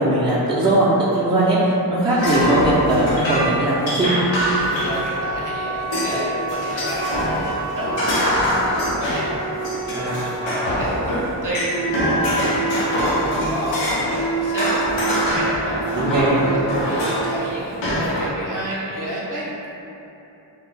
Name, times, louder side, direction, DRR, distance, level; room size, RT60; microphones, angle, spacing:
voice 1, 0.0-4.1 10.0-10.3 15.9-16.3, right 1 dB, 10° right, -8 dB, 0.4 m, -19 dB
sound 1, 2.1-5.4 5.9-6.2 6.5-14.3 14.6-17.4 17.8-18.3, equal, 90° left, 0.7 m, -23 dB
voice 2, 4.7-19.5, right 1 dB, 45° right, -6 dB, 0.7 m, -30 dB
Wind instrument woodwind instrument, 4.7-10.8, right 2 dB, 80° right, 0.6 m, -30 dB
Wind instrument woodwind instrument 2, 11.7-17.6, right 4 dB, 60° left, 0.9 m, -28 dB
2.3 x 2.2 x 3.2 m, 3.0 s
cardioid pair, 60°, 44 cm